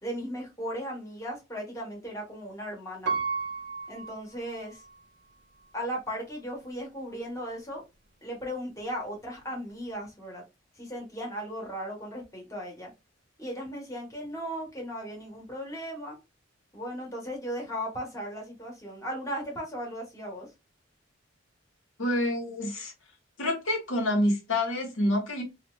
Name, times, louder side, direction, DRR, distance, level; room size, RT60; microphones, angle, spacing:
voice 1, 0.0-3.1 3.9-4.8 5.7-7.8 8.2-10.4 10.8-12.9 13.4-16.2 16.7-20.5, equal, 15° left, 1.2 m, -36 dB
Piano, 3.1-5.0 5.6-5.7, right 5 dB, 60° right, 0.6 m, -33 dB
voice 2, 22.0-22.9 23.4-25.4, left 1 dB, 80° left, 1.1 m, -27 dB
3.0 x 2.4 x 3.0 m
head